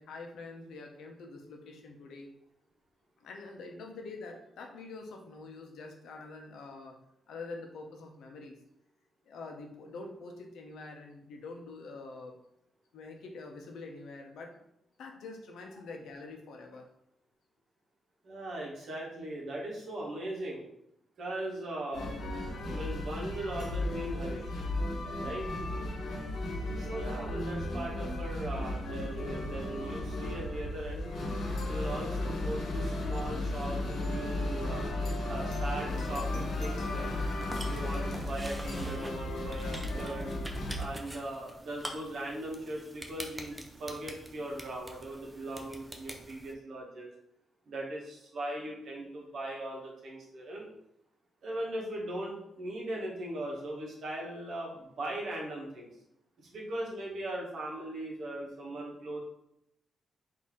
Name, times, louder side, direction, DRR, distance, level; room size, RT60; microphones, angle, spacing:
voice 1, 0.0-2.3 3.2-7.0 7.3-8.5 9.2-12.3 12.9-14.5 15.0-16.9, left 3 dB, 90° left, 2 dB, 0.8 m, -45 dB
voice 2, 18.2-20.6 21.2-22.1 22.7-24.5 25.2-25.5 26.8-31.1 31.7-34.8 35.3-37.1 37.6-40.3 40.8-47.1 47.7-50.7 51.4-55.9 56.4-59.2, right 1 dB, 60° right, -3 dB, 1.3 m, -39 dB
sound 1, 21.9-40.9, left 1 dB, 70° left, 1.1 m, -34 dB
Wind instrument woodwind instrument, 30.3-40.1, left 2 dB, 25° left, 0.9 m, -51 dB
sound 2, 35.9-46.5, right 1 dB, 10° right, 0.4 m, -46 dB
4.2 x 2.8 x 3.7 m, 0.81 s
wide cardioid pair, 155°, 0 cm